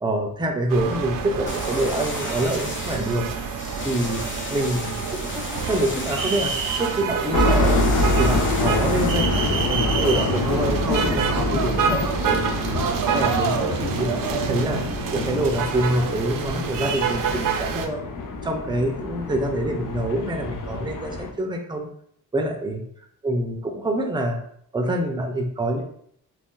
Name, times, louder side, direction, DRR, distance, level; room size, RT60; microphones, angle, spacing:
voice 1, 0.0-3.3 3.8-4.2 4.5-7.9 8.2-12.8 13.1-14.8 15.1-18.0 18.4-21.9 22.3-22.8 23.2-24.4 24.7-25.8, right 1 dB, 15° right, 3 dB, 0.5 m, -26 dB
sound 1, 0.7-17.9, right 6 dB, 65° right, 0.5 m, -27 dB
sound 2, 1.5-9.1, left 2 dB, 30° left, 0.8 m, -35 dB
sound 3, 7.3-21.3, left 2 dB, 60° left, 0.6 m, -26 dB
2.6 x 2.3 x 3.7 m, 0.66 s
cardioid pair, 75°, 36 cm